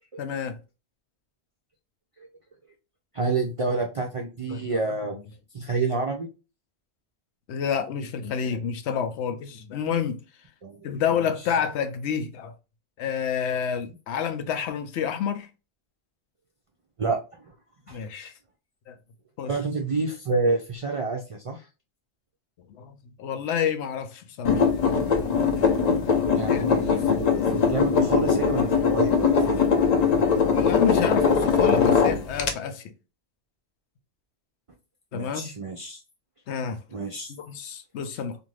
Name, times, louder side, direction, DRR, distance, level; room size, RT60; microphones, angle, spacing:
voice 1, 0.2-0.6 4.5-5.2 7.5-10.2 10.8-12.5 13.0-15.5 17.9-18.3 18.9-19.0 19.4-19.5 22.7-24.6 26.5-26.6 30.0-32.9 35.1-35.5 36.5-36.8 37.4-38.4, left 7 dB, 80° left, 0.9 m, -29 dB
voice 2, 3.1-5.1 5.5-6.3 10.6-11.3 17.0-17.5 17.9-18.0 19.5-21.7 26.3-29.7 35.1-36.0 36.9-37.3, right 3 dB, 60° right, 0.3 m, -29 dB
sound 1, 24.4-32.5, left 6 dB, 50° left, 0.5 m, -21 dB
2.5 x 2.5 x 3.0 m
omnidirectional pair, 1.1 m